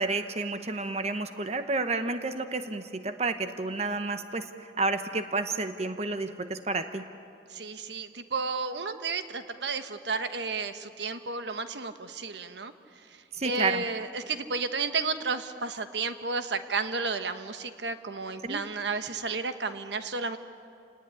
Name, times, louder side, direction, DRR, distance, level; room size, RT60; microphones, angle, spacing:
voice 1, 0.0-4.5 4.8-7.1 13.3-13.8 18.4-18.6, right 3 dB, 35° right, 8 dB, 1.0 m, -30 dB
voice 2, 7.5-12.7 13.4-20.4, right 4 dB, 80° right, 9 dB, 1.2 m, -32 dB
29.5 x 18.5 x 9.8 m, 2.5 s
head